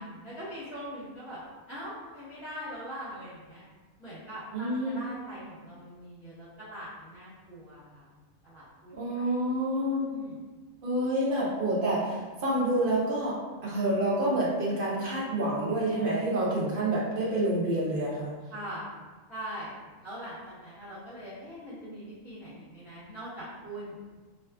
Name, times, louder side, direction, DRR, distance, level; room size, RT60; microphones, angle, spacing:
voice 1, 0.0-1.4 1.7-3.6 4.0-8.1 8.4-9.3 10.1-10.4 18.5-18.8 19.3-24.0, equal, 25° left, -15 dB, 1.1 m, -42 dB
voice 2, 4.5-5.0 8.9-10.1 10.8-13.4 13.6-18.3, right 1 dB, 60° right, -6 dB, 0.5 m, -28 dB
2.5 x 2.4 x 2.3 m, 1.3 s
omnidirectional pair, 1.4 m